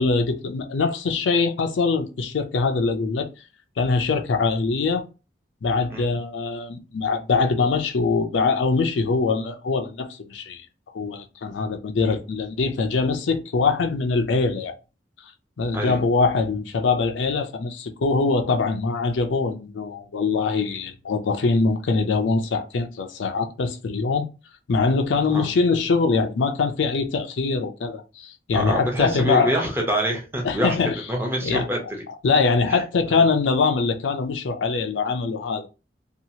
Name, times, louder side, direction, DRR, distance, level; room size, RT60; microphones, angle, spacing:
voice 1, 0.0-3.3 3.8-5.0 5.6-10.7 10.9-14.7 15.6-24.2 24.7-29.5 30.4-31.0 31.4-31.7 32.2-35.7, left 4 dB, 85° left, 0.5 m, -23 dB
voice 2, 28.5-30.8 31.1-31.8 32.7-32.8 33.1-33.2, right 1 dB, 10° right, 0.7 m, -26 dB
2.8 x 2.3 x 2.7 m
head